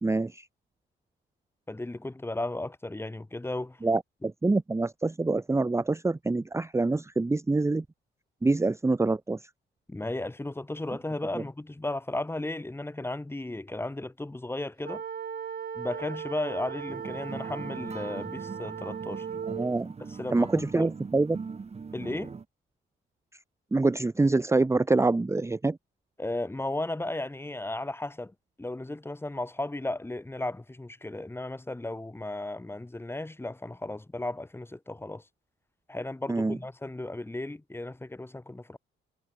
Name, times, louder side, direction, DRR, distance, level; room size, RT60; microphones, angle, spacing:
voice 1, 0.0-0.5 3.8-7.8 8.4-9.5 11.3-11.4 19.5-19.9 20.3-21.4 23.7-25.8 36.3-36.6, right 3 dB, 15° right, 0.9 m, -26 dB
voice 2, 1.7-3.8 9.9-15.0 15.7-19.3 20.2-20.9 21.9-22.3 26.2-35.2 35.9-38.8, left 2 dB, 10° left, 2.2 m, -35 dB
sound 1, 14.8-19.7, right 7 dB, 50° right, 6.9 m, -37 dB
sound 2, 16.9-22.4, right 5 dB, 30° right, 2.1 m, -41 dB
cardioid pair, 90°, 20 cm